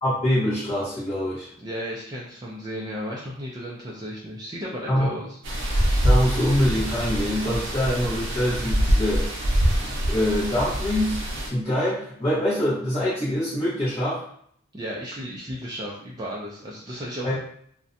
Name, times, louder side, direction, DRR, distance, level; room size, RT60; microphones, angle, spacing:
voice 1, 0.0-1.5 4.9-5.1 6.0-9.2 9.8-11.2 11.5-14.2 17.2-17.4, left 1 dB, 30° left, -11 dB, 0.8 m, -24 dB
voice 2, 1.6-5.4 14.7-17.3, equal, 20° right, -5 dB, 0.3 m, -34 dB
sound 1, 5.4-11.5, equal, 60° right, 0.6 m, -24 dB
2.5 x 2.1 x 2.5 m, 0.65 s
head